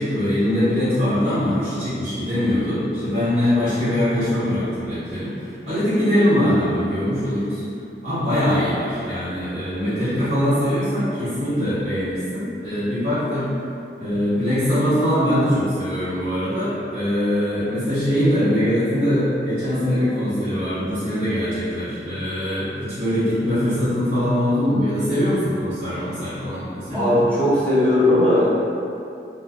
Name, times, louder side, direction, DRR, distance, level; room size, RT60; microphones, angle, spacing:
voice 1, 0.0-7.6 8.0-13.5 14.0-27.2, equal, 35° right, -18 dB, 1.0 m, -22 dB
voice 2, 26.9-28.5, left 1 dB, 10° left, -10 dB, 0.6 m, -17 dB
2.5 x 2.2 x 3.4 m, 2.6 s
head